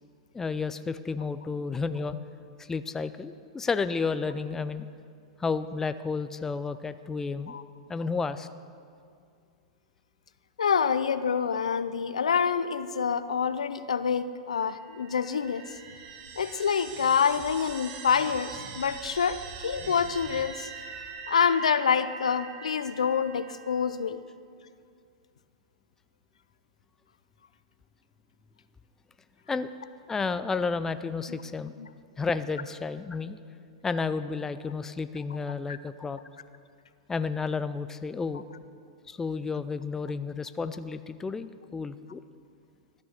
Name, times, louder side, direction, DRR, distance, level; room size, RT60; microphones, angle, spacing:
voice 1, 0.3-2.2 2.6-4.9 5.4-7.6 7.9-8.5 29.5-29.7 30.1-31.7 32.2-33.4 33.8-36.2 37.1-38.4 39.1-42.2, left 4 dB, 15° left, 12 dB, 0.4 m, -31 dB
voice 2, 10.6-15.6 16.4-20.7 21.3-24.2 31.8-31.9 35.7-35.8, left 6 dB, 85° left, 12 dB, 0.5 m, -27 dB
sound 1, 14.7-24.0, right 6 dB, 50° right, 1.2 m, -43 dB
13.5 x 6.3 x 7.2 m, 2.3 s
hypercardioid pair, 110°, 3 cm